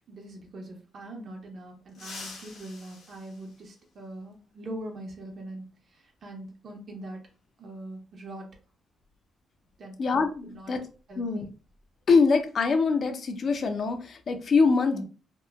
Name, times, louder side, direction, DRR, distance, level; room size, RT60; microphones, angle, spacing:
voice 1, 0.1-7.2 7.6-8.5 9.8-10.0 10.5-10.7 11.1-11.5, right 1 dB, 55° right, 1 dB, 0.7 m, -42 dB
sound 1, 1.9-4.3 5.9-6.0 7.3-7.4 9.0-9.2 9.5-9.7 10.2-12.4 12.7-12.9 13.3-13.8, left 3 dB, 75° left, 0.9 m, -48 dB
voice 2, 10.0-10.8 11.2-11.4 12.1-15.0, left 4 dB, 50° left, 7 dB, 0.5 m, -24 dB
2.8 x 2.1 x 2.3 m, 0.37 s
cardioid pair, 90°, 0 cm